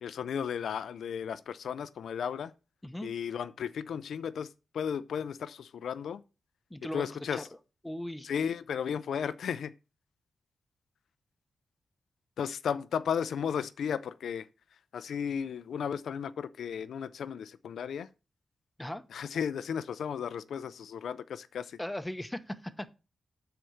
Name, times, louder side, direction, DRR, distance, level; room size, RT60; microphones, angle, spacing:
voice 1, 0.0-2.5 3.0-6.2 6.9-7.5 8.2-9.7 12.4-14.5 14.9-18.1 19.1-21.8, left 7 dB, 85° left, 0.4 m, -34 dB
voice 2, 6.7-7.4 7.8-8.3 18.8-19.0 21.8-22.9, left 1 dB, 10° left, 0.8 m, -38 dB
6.7 x 4.4 x 6.3 m
cardioid pair, 80°, 0 cm